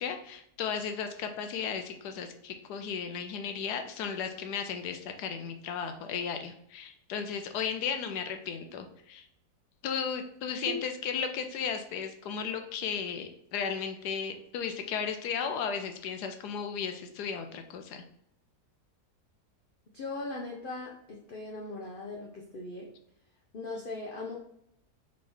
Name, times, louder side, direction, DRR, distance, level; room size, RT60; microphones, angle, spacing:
voice 1, 0.0-9.2 9.8-18.0, left 7 dB, 80° left, 6 dB, 1.2 m, -35 dB
voice 2, 19.9-22.9 23.5-24.3, left 2 dB, 60° left, -2 dB, 0.5 m, -39 dB
3.8 x 3.8 x 3.3 m, 0.74 s
omnidirectional pair, 1.7 m